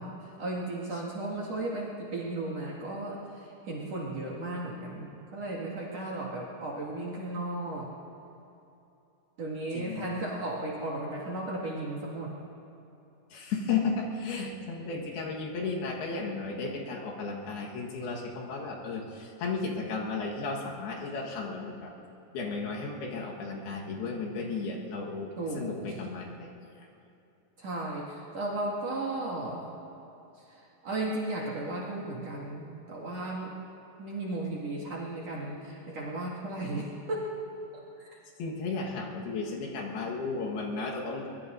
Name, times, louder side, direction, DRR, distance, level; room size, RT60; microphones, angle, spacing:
voice 1, 0.0-7.9 9.4-12.3 25.4-25.9 27.6-29.6 30.8-33.5 34.0-37.3 38.0-38.1, right 2 dB, 50° right, -3 dB, 2.7 m, -35 dB
voice 2, 9.7-10.1 13.3-21.9 22.3-26.5 38.4-41.3, left 4 dB, 70° left, -1 dB, 3.3 m, -34 dB
23.0 x 21.0 x 2.6 m, 2.8 s
omnidirectional pair, 4.8 m